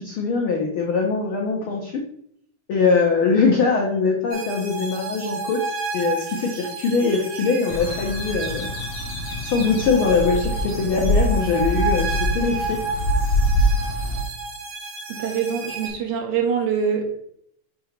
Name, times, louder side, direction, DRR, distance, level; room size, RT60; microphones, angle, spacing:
voice 1, 0.0-2.0 2.7-8.7 9.4-12.8, left 4 dB, 80° left, -1 dB, 1.1 m, -22 dB
sound 1, 4.3-15.9, right 3 dB, 60° right, 2.6 m, -31 dB
sound 2, 7.7-14.2, left 1 dB, 65° left, 1.9 m, -24 dB
voice 2, 15.1-17.2, right 7 dB, 75° right, 3 dB, 2.4 m, -24 dB
6.8 x 2.9 x 5.8 m, 0.69 s
omnidirectional pair, 3.7 m